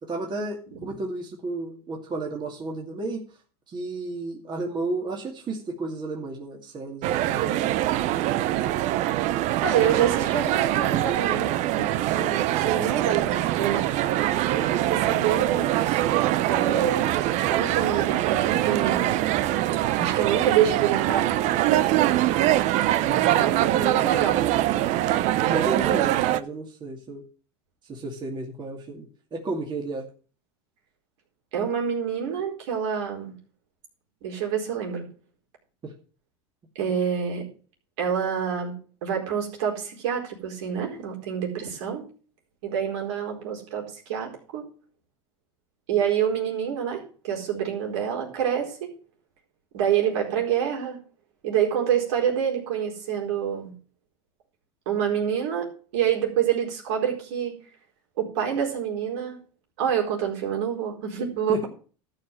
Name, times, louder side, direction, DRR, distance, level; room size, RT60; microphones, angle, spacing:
voice 1, 0.0-3.2 3.7-7.8 9.5-10.3 14.4-14.9 22.9-23.5 25.4-27.2 27.8-30.1 35.8-35.9 61.5-61.6, right 2 dB, 30° right, 1 dB, 2.5 m, -33 dB
sound 1, 7.0-26.4, right 14 dB, 55° right, 0.7 m, -23 dB
voice 2, 9.6-13.9 14.9-15.9 16.5-17.1 17.5-19.3 20.0-21.3 23.4-24.4 31.5-33.3 34.2-35.0 36.7-37.5 38.0-38.7 39.0-42.0 42.6-44.7 45.9-48.9 49.7-51.0 51.4-53.7 54.9-57.5 58.2-59.4 59.8-61.7, right 8 dB, 75° right, 0 dB, 4.3 m, -27 dB
13.0 x 5.0 x 7.6 m, 0.39 s
supercardioid pair, 110°, 15 cm